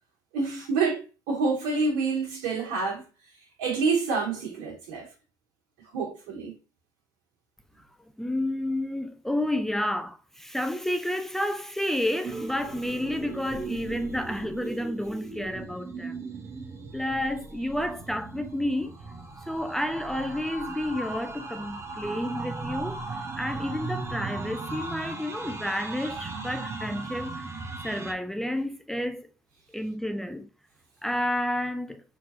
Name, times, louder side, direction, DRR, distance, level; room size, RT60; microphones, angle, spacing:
voice 1, 0.3-3.0 3.6-5.1 5.9-6.5, right 4 dB, 85° right, 2.9 m, -27 dB
voice 2, 8.2-16.2 16.9-19.0 19.5-27.4 27.8-29.3 29.7-30.5 31.0-32.0, left 1 dB, 5° left, 0.5 m, -30 dB
sound 1, 12.2-28.1, right 3 dB, 30° right, 1.0 m, -37 dB
4.6 x 4.0 x 2.7 m
supercardioid pair, 85°, 9 cm